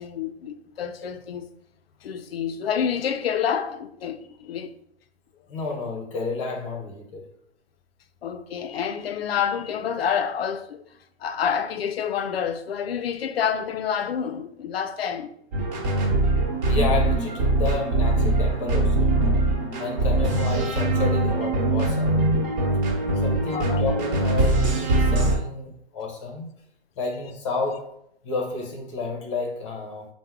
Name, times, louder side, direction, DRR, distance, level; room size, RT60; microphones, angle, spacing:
voice 1, 0.0-1.5 2.0-4.7 8.2-10.8 11.2-15.3 23.3-23.8, left 8 dB, 60° left, 0.4 m, -28 dB
voice 2, 5.5-7.3 16.7-19.3 19.8-22.2 23.1-26.5 27.0-27.9 28.2-30.1, left 3 dB, 30° left, 0.7 m, -31 dB
sound 1, 15.5-25.4, right 2 dB, 40° right, 1.2 m, -22 dB
4.4 x 2.1 x 3.5 m
hypercardioid pair, 160°, 34 cm